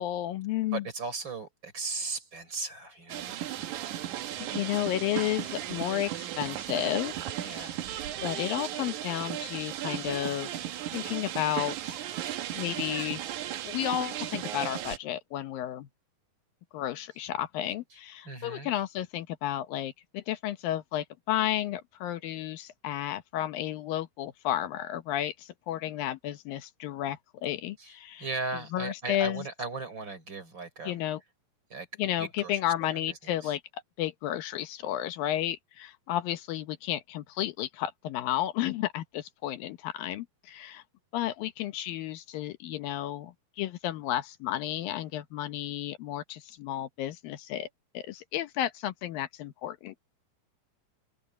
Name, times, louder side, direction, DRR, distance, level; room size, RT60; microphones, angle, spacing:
voice 1, 0.0-0.9 4.5-7.8 8.2-10.6 10.9-12.0 12.5-13.2 13.6-15.9 16.7-28.3 28.7-29.5 30.8-31.2 32.0-40.8 41.1-47.7 47.9-50.0, left 12 dB, 80° left, 2.6 m, -32 dB
voice 2, 0.7-3.6 7.4-7.8 18.2-18.7 27.8-27.9 28.2-31.0 31.7-31.9 32.2-33.5, right 3 dB, 30° right, 4.8 m, -37 dB
sound 1, 3.1-15.0, right 12 dB, 65° right, 2.3 m, -36 dB
omnidirectional pair, 4.2 m